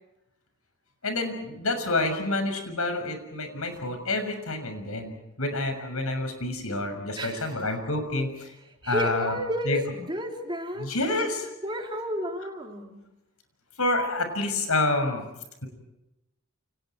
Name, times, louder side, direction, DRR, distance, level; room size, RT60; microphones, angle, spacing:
voice 1, 1.0-8.5 8.8-9.4 9.6-9.8 10.8-11.5 13.8-15.2, left 2 dB, 80° left, 7 dB, 6.6 m, -28 dB
voice 2, 7.2-7.5 8.8-10.9 11.6-13.0, equal, 20° right, 2 dB, 3.5 m, -31 dB
30.0 x 29.5 x 4.7 m, 0.94 s
head